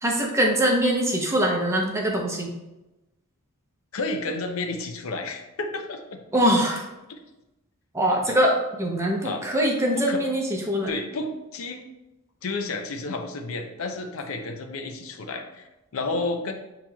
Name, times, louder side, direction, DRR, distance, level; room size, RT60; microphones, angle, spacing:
voice 1, 0.0-2.5 6.3-6.8 7.9-10.9, equal, 15° right, 0 dB, 0.7 m, -23 dB
voice 2, 3.9-6.2 7.1-7.2 8.3-8.4 9.2-9.5 9.9-10.2 10.9-11.8 12.4-16.5, left 3 dB, 70° left, 5 dB, 0.5 m, -31 dB
7.1 x 2.9 x 2.3 m, 0.98 s
head